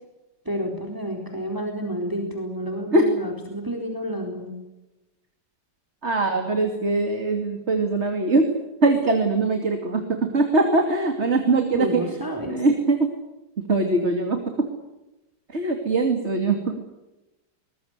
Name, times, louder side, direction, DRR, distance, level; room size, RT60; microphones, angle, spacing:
voice 1, 0.4-4.5 11.7-12.6, equal, 10° right, 2 dB, 4.1 m, -30 dB
voice 2, 6.0-8.5 8.8-12.0 12.5-13.1 13.6-14.7 15.5-16.8, right 3 dB, 35° right, 4 dB, 2.8 m, -22 dB
24.0 x 20.5 x 8.1 m, 1.0 s
omnidirectional pair, 2.0 m